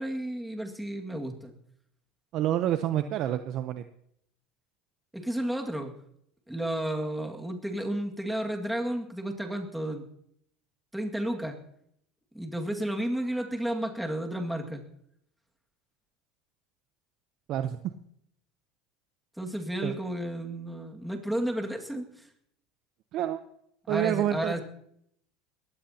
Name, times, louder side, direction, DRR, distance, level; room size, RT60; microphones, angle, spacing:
voice 1, 0.0-1.5 5.1-5.9 6.5-10.0 10.9-11.6 12.3-14.8 19.4-22.3 23.8-24.6, right 1 dB, 5° right, 2 dB, 2.1 m, -32 dB
voice 2, 2.3-3.8 17.5-17.8 19.8-19.9 23.1-23.4 23.9-24.6, right 11 dB, 55° right, 9 dB, 0.8 m, -28 dB
21.0 x 15.5 x 2.9 m, 0.71 s
supercardioid pair, 125°, 0 cm